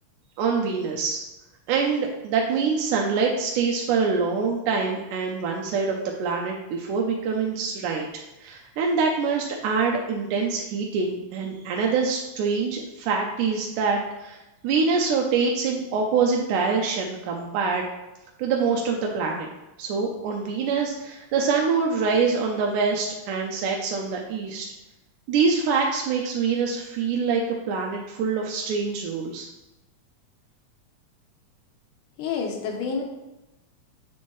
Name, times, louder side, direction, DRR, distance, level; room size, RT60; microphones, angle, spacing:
voice 1, 0.4-1.2 1.7-8.1 8.4-14.4 14.6-17.9 18.4-19.5 19.8-24.7 25.3-29.5, right 5 dB, 90° right, 0 dB, 2.1 m, -25 dB
voice 2, 32.2-33.0, left 5 dB, 85° left, 2 dB, 2.5 m, -28 dB
8.2 x 4.4 x 3.1 m, 0.97 s
omnidirectional pair, 3.5 m